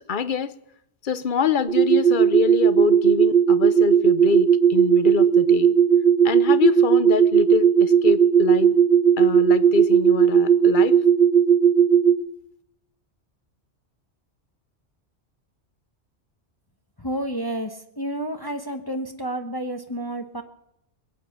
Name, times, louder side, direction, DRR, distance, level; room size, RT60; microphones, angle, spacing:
voice 1, 0.1-0.5 1.0-5.7 6.2-8.8 9.2-11.0, left 6 dB, 50° left, 14 dB, 1.0 m, -25 dB
sound 1, 1.7-12.1, right 8 dB, 70° right, 1.3 m, -17 dB
voice 2, 17.0-20.4, right 1 dB, 20° left, 5 dB, 1.1 m, -30 dB
21.5 x 8.8 x 7.2 m, 0.80 s
omnidirectional pair, 1.2 m